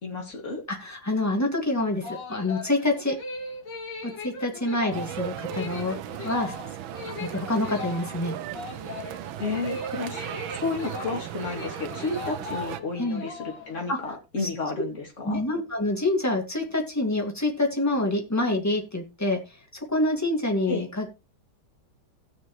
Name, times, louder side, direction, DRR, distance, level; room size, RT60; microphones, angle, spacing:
voice 1, 0.0-0.6 7.1-7.2 9.4-15.4 20.7-20.9, left 3 dB, 35° left, 2 dB, 2.7 m, -32 dB
voice 2, 0.7-3.2 4.0-6.0 6.2-6.5 7.2-8.4 13.0-13.2 13.9-14.0 14.4-14.5 15.2-19.4 19.7-21.1, left 2 dB, 10° left, 2 dB, 2.0 m, -26 dB
sound 1, 1.9-13.9, left 3 dB, 60° left, 2.9 m, -38 dB
sound 2, 4.9-12.8, right 11 dB, 80° right, 1.5 m, -37 dB
17.5 x 6.7 x 3.1 m, 0.26 s
omnidirectional pair, 2.2 m